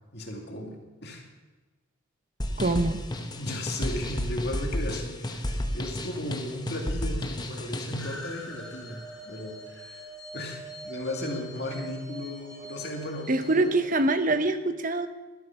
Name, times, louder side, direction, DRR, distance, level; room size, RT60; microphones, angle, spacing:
voice 1, 0.1-1.2 3.4-10.1 10.3-13.7 14.3-14.4, left 1 dB, 50° left, 1 dB, 2.3 m, -36 dB
sound 1, 2.4-8.2, left 1 dB, 20° left, 0.9 m, -32 dB
voice 2, 2.6-3.0 13.3-15.1, right 2 dB, 40° right, 11 dB, 0.8 m, -24 dB
sound 2, 8.0-14.0, right 1 dB, 5° left, 2.8 m, -43 dB
12.5 x 12.5 x 5.8 m, 1.2 s
head